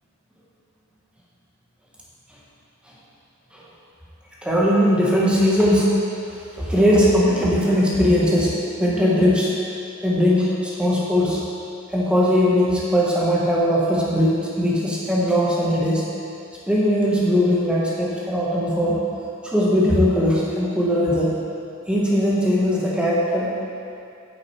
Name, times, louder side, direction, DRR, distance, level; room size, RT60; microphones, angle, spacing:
voice 1, 4.4-6.0 6.3-9.5 10.0-11.4 11.9-16.1 16.7-19.0 19.4-21.4 21.9-23.5, equal, 5° right, -6 dB, 1.2 m, -19 dB
8.7 x 6.1 x 4.6 m, 2.6 s
head